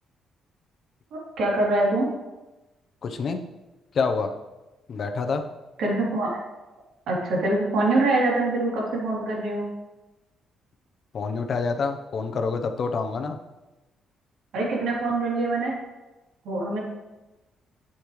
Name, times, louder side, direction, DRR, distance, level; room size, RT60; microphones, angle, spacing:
voice 1, 1.1-2.1 5.8-6.4 7.1-9.6 14.5-15.7 16.4-16.8, right 2 dB, 80° right, -4 dB, 3.3 m, -24 dB
voice 2, 3.0-3.4 3.9-4.3 4.9-5.4 11.1-13.4, left 4 dB, 55° left, 5 dB, 0.8 m, -27 dB
8.7 x 8.1 x 3.2 m, 1.1 s
cardioid pair, 90°, 0 cm